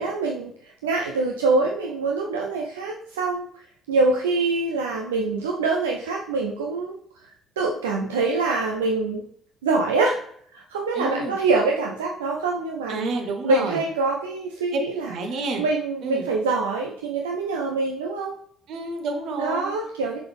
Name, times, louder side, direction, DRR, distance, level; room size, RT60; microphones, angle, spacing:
voice 1, 0.0-3.5 3.9-7.0 7.2-9.2 9.6-10.2 10.5-13.0 13.4-15.1 15.6-18.3 19.4-20.2, right 3 dB, 85° right, 0 dB, 0.5 m, -25 dB
voice 2, 10.9-11.4 12.9-13.8 14.7-14.8 15.1-15.6 16.0-16.3 18.7-19.7, right 3 dB, 60° right, 4 dB, 1.2 m, -29 dB
6.8 x 5.3 x 3.4 m, 0.64 s
hypercardioid pair, 50°, 0 cm